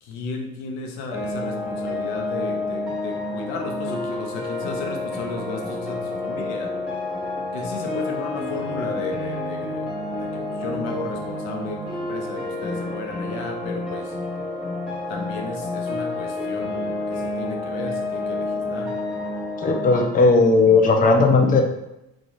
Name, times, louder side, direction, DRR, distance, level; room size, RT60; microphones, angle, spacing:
voice 1, 0.0-6.7 7.5-14.1 15.1-19.0, left 3 dB, 80° left, 3 dB, 0.8 m, -34 dB
sound 1, 1.1-20.1, left 2 dB, ahead, 1.4 m, -29 dB
voice 2, 19.6-21.6, left 3 dB, 20° left, 2 dB, 0.5 m, -16 dB
3.0 x 2.5 x 4.0 m, 0.88 s
supercardioid pair, 70°, 43 cm